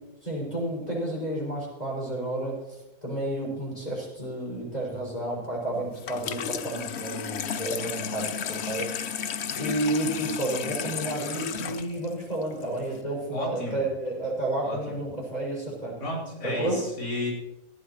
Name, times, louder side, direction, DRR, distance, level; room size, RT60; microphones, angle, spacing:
voice 1, 0.2-9.3 9.5-16.0 16.4-16.8, right 1 dB, 25° left, -4 dB, 6.5 m, -31 dB
Water tap faucet / Sink (filling or washing), 6.0-13.0, left 7 dB, 55° left, 0.8 m, -34 dB
voice 2, 13.3-13.8 14.6-15.0 16.0-17.3, left 1 dB, 90° left, -4 dB, 4.9 m, -32 dB
19.5 x 13.5 x 3.1 m, 0.94 s
omnidirectional pair, 1.8 m